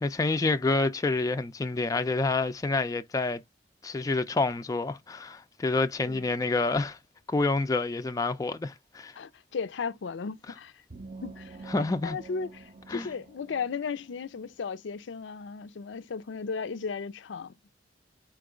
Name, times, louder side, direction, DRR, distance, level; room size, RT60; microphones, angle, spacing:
voice 1, 0.0-3.4 3.8-7.0 7.3-9.1 11.7-12.2 12.9-13.1, left 3 dB, 20° left, 0.3 m, -28 dB
voice 2, 9.2-10.7 11.2-17.5, left 5 dB, 85° left, 0.5 m, -36 dB
sound 1, 10.9-14.5, right 3 dB, 40° right, 0.6 m, -47 dB
4.5 x 2.4 x 4.8 m
head